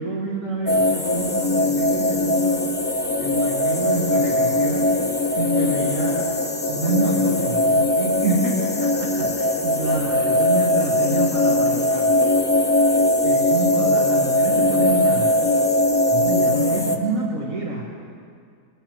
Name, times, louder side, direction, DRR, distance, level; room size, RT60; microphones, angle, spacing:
voice 1, 0.0-2.7 3.2-5.0 5.4-6.3 6.7-12.1 13.2-15.4 16.1-17.8, right 2 dB, 55° right, -4 dB, 1.9 m, -27 dB
sound 1, 0.7-17.0, left 1 dB, 10° left, 0.5 m, -20 dB
22.5 x 9.1 x 4.6 m, 2.2 s
omnidirectional pair, 1.7 m